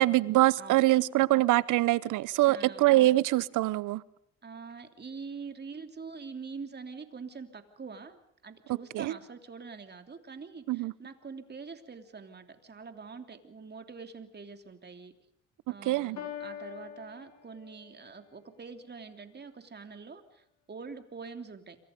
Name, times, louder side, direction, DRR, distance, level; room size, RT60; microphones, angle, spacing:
voice 1, 0.0-4.0 8.9-9.1 10.7-10.9 15.9-16.2, right 17 dB, 85° right, 0.8 m, -24 dB
voice 2, 0.6-1.0 2.4-3.1 4.4-15.1 15.7-21.8, right 5 dB, 35° right, 3.2 m, -45 dB
Piano, 16.2-18.1, left 9 dB, 65° left, 6.6 m, -43 dB
27.5 x 24.0 x 5.3 m
cardioid pair, 90°, 30 cm